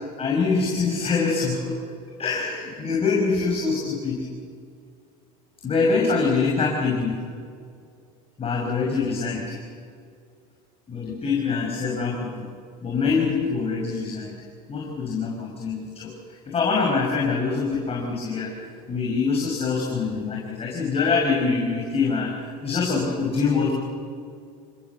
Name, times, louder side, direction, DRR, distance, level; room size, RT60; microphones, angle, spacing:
voice 1, 0.2-1.7 2.2-4.2 5.6-7.2 8.4-9.6 10.9-12.5 12.8-14.4 14.7-16.1 16.5-23.7, left 4 dB, 30° left, -2 dB, 5.7 m, -24 dB
29.0 x 17.5 x 7.2 m, 2.3 s
supercardioid pair, 105°, 19 cm